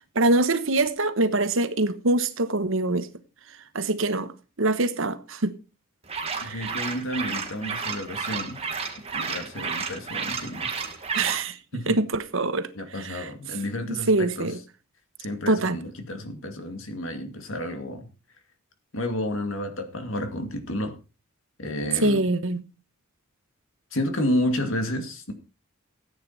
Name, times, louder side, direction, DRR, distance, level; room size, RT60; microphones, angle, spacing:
voice 1, 0.1-3.1 3.7-4.3 4.6-5.5 6.4-6.7 11.1-11.6 11.9-12.7 13.0-13.3 13.9-14.6 15.5-15.8 22.0-22.6, right 2 dB, 65° right, 1.2 m, -24 dB
sound 1, 6.1-11.4, right 5 dB, 30° right, 1.8 m, -32 dB
voice 2, 6.4-8.6 9.1-10.7 11.1-11.2 11.7-12.0 12.7-14.5 15.2-18.1 18.9-20.9 21.6-22.2 23.9-25.3, left 1 dB, 65° left, 2.3 m, -31 dB
14.5 x 9.2 x 4.2 m
head